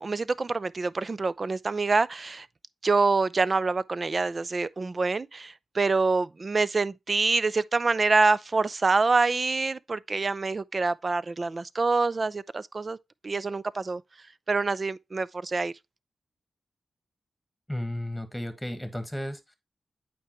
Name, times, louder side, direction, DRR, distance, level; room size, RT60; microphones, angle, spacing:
voice 1, 0.0-2.5 2.8-13.0 13.2-14.0 14.5-15.7, right 3 dB, 40° right, 0.4 m, -26 dB
voice 2, 17.7-19.5, left 1 dB, ahead, 1.5 m, -34 dB
8.5 x 4.7 x 3.0 m
cardioid pair, 80°, 0 cm